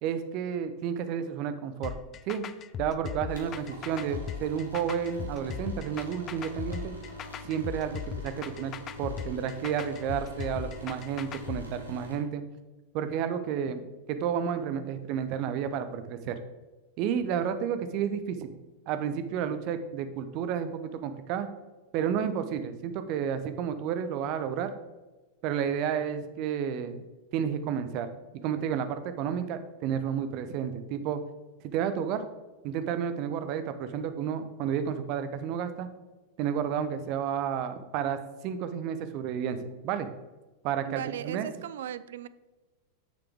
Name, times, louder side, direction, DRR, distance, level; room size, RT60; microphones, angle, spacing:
voice 1, 0.0-1.9 2.3-2.5 2.8-6.9 7.4-8.7 9.0-12.4 12.9-13.8 14.1-16.4 17.0-18.5 18.9-21.5 21.9-24.7 25.4-27.0 27.3-28.1 28.4-31.2 31.6-32.2 32.6-35.9 36.4-40.1 40.6-41.5, right 8 dB, 40° right, 10 dB, 0.8 m, -31 dB
sound 1, 1.8-11.6, left 8 dB, 30° left, 0.4 m, -38 dB
sound 2, 3.3-12.2, equal, 80° right, 1.8 m, -45 dB
voice 2, 40.9-42.3, right 10 dB, 60° right, 16 dB, 0.4 m, -37 dB
9.3 x 6.9 x 3.6 m, 1.2 s
figure-of-eight pair, 90°, 0 cm